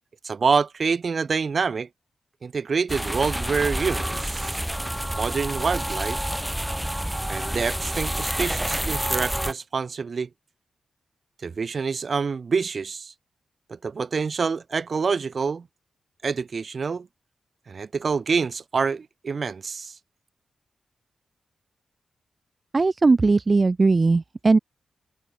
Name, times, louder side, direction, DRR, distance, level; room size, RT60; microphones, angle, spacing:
voice 1, 0.2-1.9 2.4-4.6 5.1-6.2 7.3-10.3 11.4-13.1 13.7-15.7 16.2-17.1 17.7-19.9, right 5 dB, 60° right, 1.5 m, -26 dB
sound 1, 2.9-9.5, right 1 dB, 10° right, 1.8 m, -28 dB
voice 2, 22.7-24.6, right 3 dB, 40° right, 0.4 m, -19 dB
cardioid pair, 55°, 0 cm